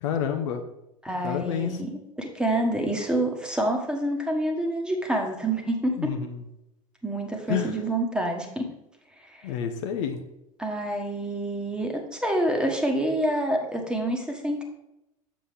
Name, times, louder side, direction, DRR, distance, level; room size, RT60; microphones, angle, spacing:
voice 1, 0.0-0.6 1.2-1.7 6.0-6.4 7.5-7.7 9.4-10.2, left 8 dB, 55° left, 5 dB, 0.8 m, -28 dB
voice 2, 1.0-6.1 7.0-8.7 9.3-9.4 10.6-14.6, right 1 dB, 5° right, 2 dB, 1.4 m, -27 dB
7.5 x 6.8 x 3.5 m, 0.89 s
figure-of-eight pair, 75°, 18 cm